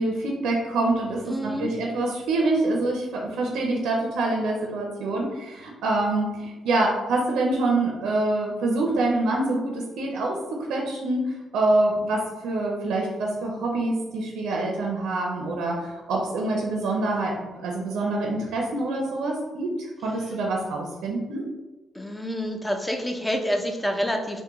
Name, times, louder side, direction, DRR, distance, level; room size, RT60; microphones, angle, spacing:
voice 1, 0.0-10.4 10.7-11.2 11.5-19.7 20.0-21.4, right 2 dB, 85° right, 0 dB, 0.5 m, -25 dB
voice 2, 1.3-1.7 21.9-24.4, equal, 10° left, 4 dB, 0.4 m, -27 dB
3.5 x 2.1 x 3.0 m, 1.1 s
cardioid pair, 90°, 0 cm